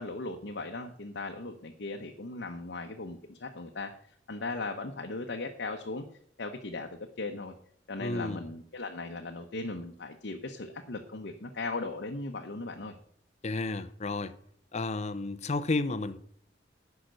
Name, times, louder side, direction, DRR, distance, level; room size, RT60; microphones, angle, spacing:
voice 1, 0.0-3.9 4.3-6.0 6.4-7.5 7.9-12.9, left 3 dB, 65° left, 0.9 m, -38 dB
voice 2, 8.0-8.4 13.4-14.3 14.7-16.2, left 3 dB, 40° left, 0.6 m, -32 dB
10.0 x 5.8 x 6.5 m
head